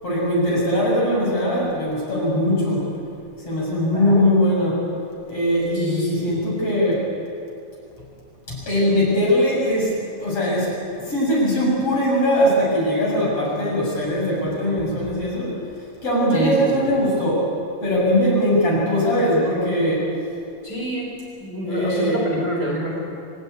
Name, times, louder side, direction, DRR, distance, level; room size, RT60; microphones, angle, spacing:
voice 1, 0.0-2.9 3.4-4.8 5.3-7.1 8.5-9.9 10.2-10.7 11.0-15.5 16.0-17.5 17.8-20.1 21.7-22.2, equal, 40° left, -4 dB, 7.9 m, -20 dB
voice 2, 3.9-4.2 5.7-6.3 16.3-16.8 20.6-23.1, equal, 25° right, -3 dB, 4.6 m, -27 dB
27.5 x 15.5 x 9.4 m, 2.6 s
omnidirectional pair, 4.2 m